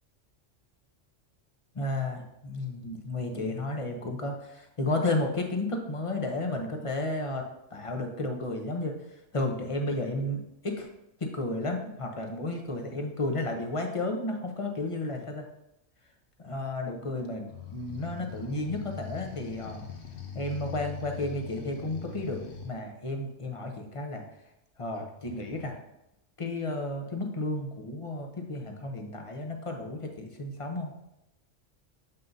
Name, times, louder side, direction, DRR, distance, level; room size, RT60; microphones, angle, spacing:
voice 1, 1.7-9.0 9.3-10.9 11.2-15.4 16.4-19.8 20.3-24.2 24.8-25.8 26.4-31.0, left 2 dB, 30° left, 3 dB, 0.8 m, -32 dB
sound 1, 17.5-22.7 25.2-25.7, left 7 dB, 80° left, 1.3 m, -42 dB
7.4 x 5.6 x 2.7 m, 0.85 s
omnidirectional pair, 1.3 m